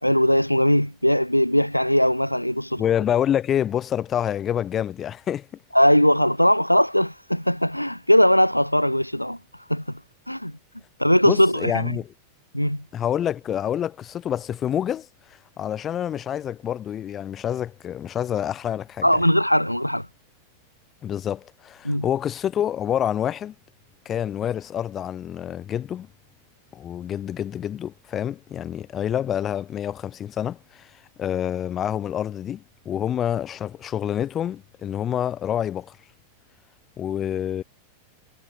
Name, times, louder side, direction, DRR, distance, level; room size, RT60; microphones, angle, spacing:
voice 1, 0.0-2.8 5.7-10.0 10.3-10.5 11.0-12.0 12.5-12.8 19.0-20.1 21.8-22.0, equal, 90° left, 0.4 m, -20 dB
voice 2, 2.8-5.5 11.3-12.1 12.9-15.1 15.6-19.0 21.0-23.5 24.1-26.1 26.7-30.9 31.2-36.0 37.0-37.6, left 10 dB, 25° left, 0.6 m, -27 dB
figure-of-eight pair, 90°, 0 cm